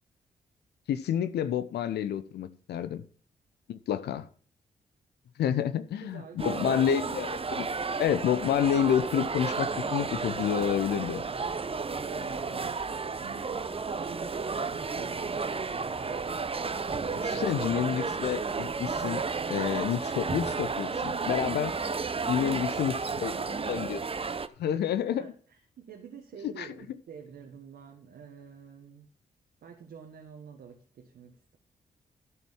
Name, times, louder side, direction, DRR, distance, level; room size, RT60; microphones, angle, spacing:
voice 1, 0.9-3.0 3.7-4.3 5.4-7.7 8.0-11.2 17.2-19.2 19.5-21.7 22.3-23.3 23.7-24.0 24.6-25.3 26.4-26.7, left 9 dB, 80° left, 0.8 m, -29 dB
voice 2, 6.0-6.9 12.0-15.5 17.1-17.7 22.2-23.8 24.7-25.3 25.8-29.1 29.6-31.6, right 6 dB, 75° right, 1.5 m, -48 dB
sound 1, 6.4-24.5, right 4 dB, 35° right, 0.8 m, -32 dB
12.5 x 4.6 x 7.2 m
supercardioid pair, 50°, 17 cm